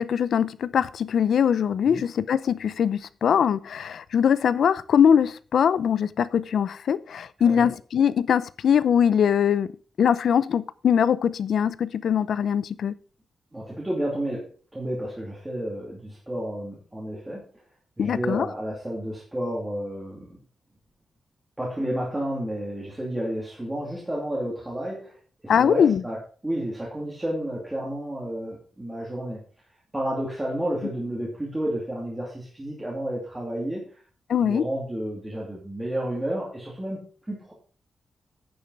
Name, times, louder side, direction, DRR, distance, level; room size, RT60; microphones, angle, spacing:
voice 1, 0.0-9.7 10.0-12.9 18.0-18.5 25.5-26.0 34.3-34.6, left 8 dB, 70° left, 0.6 m, -22 dB
voice 2, 7.4-7.7 13.5-17.4 18.0-20.4 21.6-25.2 25.4-26.2 26.4-29.4 29.9-34.0 34.4-37.0 37.3-37.5, right 1 dB, 10° right, 2.5 m, -31 dB
10.0 x 7.1 x 4.7 m
wide cardioid pair, 175°, 0 cm